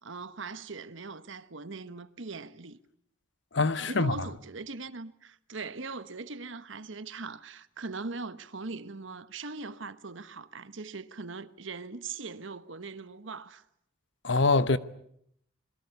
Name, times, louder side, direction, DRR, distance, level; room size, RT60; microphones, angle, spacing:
voice 1, 0.0-2.8 3.9-13.6, right 4 dB, 70° right, 1.2 m, -40 dB
voice 2, 3.5-4.1 14.2-14.8, left 3 dB, 60° left, 1.0 m, -24 dB
26.5 x 21.5 x 8.2 m
head